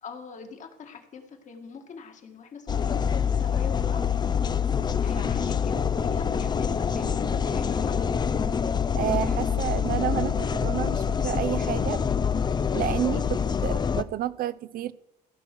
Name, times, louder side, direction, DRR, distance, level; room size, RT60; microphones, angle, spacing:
voice 1, 0.0-4.0 5.0-8.3, left 5 dB, 45° left, 5 dB, 2.0 m, -43 dB
sound 1, 2.7-14.0, left 7 dB, 25° left, 0.5 m, -26 dB
voice 2, 9.0-12.0 12.7-14.9, right 12 dB, 60° right, 17 dB, 0.6 m, -30 dB
15.5 x 6.3 x 6.1 m, 0.85 s
cardioid pair, 110°, 17 cm